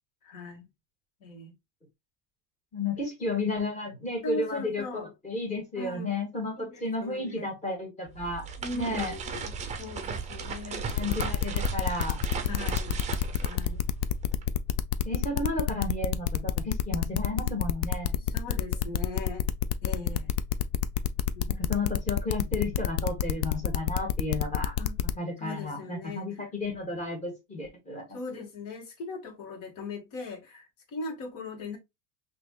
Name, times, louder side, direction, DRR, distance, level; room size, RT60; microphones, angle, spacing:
voice 1, 0.2-0.6 1.2-1.5 4.2-5.1 5.8-6.2 6.6-7.5 8.6-10.9 12.5-13.0 13.4-13.9 18.3-19.5 19.8-20.3 21.3-21.5 24.8-25.0 25.4-26.5 28.1-31.8, left 3 dB, 60° left, 1.8 m, -39 dB
voice 2, 2.7-8.4 8.7-9.1 10.9-12.2 15.0-18.2 21.5-24.8 25.2-28.0, left 2 dB, 20° left, 1.7 m, -33 dB
sound 1, 8.1-14.5, right 5 dB, 20° right, 0.6 m, -36 dB
sound 2, 10.9-25.1, left 12 dB, 80° left, 0.6 m, -28 dB
5.8 x 2.8 x 2.3 m
cardioid pair, 160°, 36 cm